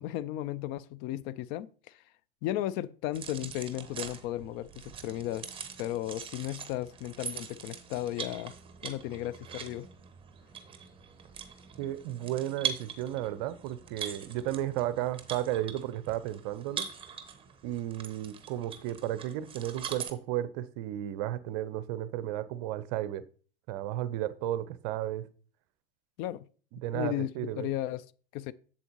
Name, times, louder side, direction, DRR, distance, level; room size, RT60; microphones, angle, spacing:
voice 1, 0.0-2.0 2.4-4.7 5.0-8.5 8.8-9.9 26.2-26.4 26.9-27.3 27.6-28.1 28.3-28.5, left 13 dB, 35° left, 0.4 m, -35 dB
sound 1, 3.1-20.1, right 7 dB, 20° right, 1.0 m, -42 dB
voice 2, 11.8-16.9 17.6-23.2 23.7-25.3 26.7-27.7, right 13 dB, 45° right, 0.6 m, -33 dB
7.7 x 7.4 x 2.9 m
figure-of-eight pair, 90°, 30 cm